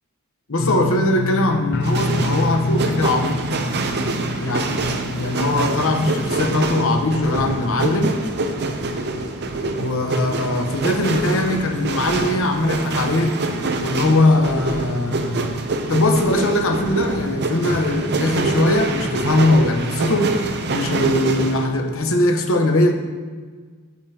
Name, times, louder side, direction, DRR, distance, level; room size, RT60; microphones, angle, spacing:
voice 1, 0.5-3.4 4.4-4.8 5.1-8.2 9.8-13.4 13.8-15.5 15.9-20.4 20.7-22.9, left 1 dB, 65° left, 4 dB, 1.0 m, -20 dB
sound 1, 0.6-7.5 7.8-8.3 8.7-8.8, left 2 dB, 50° left, 0.5 m, -28 dB
sound 2, 1.8-21.7, right 2 dB, 50° right, 0.6 m, -25 dB
8.6 x 8.6 x 2.9 m, 1.5 s
head